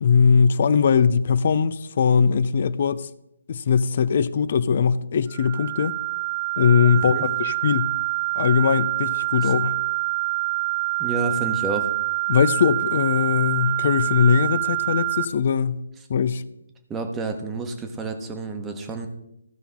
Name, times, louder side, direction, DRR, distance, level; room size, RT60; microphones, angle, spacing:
voice 1, 0.0-3.1 3.5-5.9 6.6-7.9 8.4-9.8 12.3-15.8 16.1-16.4, left 6 dB, 50° left, 0.5 m, -20 dB
sound 1, 5.3-15.2, right 22 dB, 35° right, 0.6 m, -26 dB
voice 2, 11.0-11.9 16.9-19.1, right 3 dB, 10° right, 1.2 m, -29 dB
15.0 x 5.6 x 3.7 m
figure-of-eight pair, 145°, 0 cm